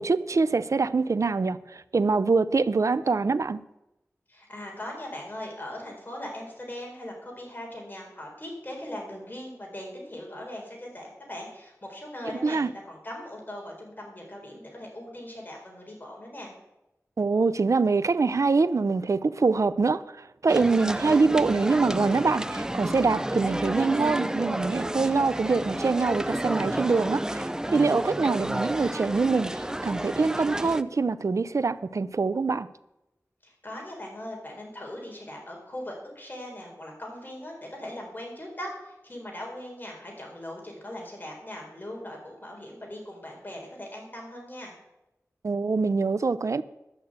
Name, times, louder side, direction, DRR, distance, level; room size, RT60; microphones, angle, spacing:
voice 1, 0.0-1.6 1.9-3.6 12.4-12.7 17.2-20.0 20.4-32.7 45.4-46.6, right 4 dB, 65° right, 0.5 m, -24 dB
voice 2, 4.3-16.5 33.4-44.8, left 1 dB, 35° left, 4.1 m, -40 dB
sound 1, 20.5-30.8, right 1 dB, 10° right, 0.4 m, -31 dB
11.5 x 6.6 x 8.0 m
wide cardioid pair, 70°, 6 cm